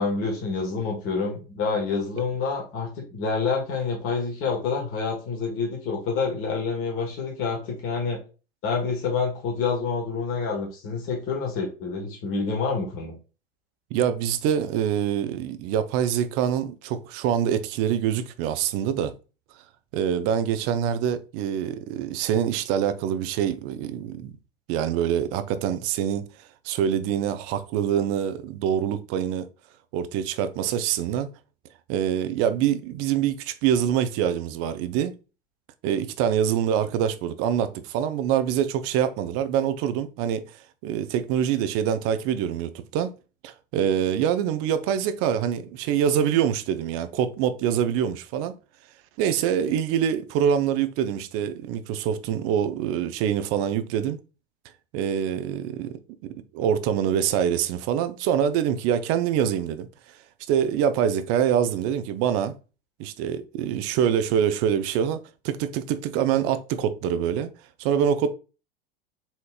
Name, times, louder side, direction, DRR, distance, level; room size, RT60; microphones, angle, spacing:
voice 1, 0.0-8.2 8.6-13.1, left 4 dB, 45° left, 1.4 m, -27 dB
voice 2, 13.9-19.1 19.9-24.4 24.7-26.2 26.6-29.5 29.9-31.3 31.9-35.1 35.8-40.5 40.8-43.1 43.4-48.5 49.2-54.2 54.9-59.9 60.5-62.5 63.0-65.2 65.4-67.5 67.8-68.4, right 9 dB, 50° right, 0.5 m, -25 dB
4.2 x 3.2 x 2.3 m
hypercardioid pair, 90°, 30 cm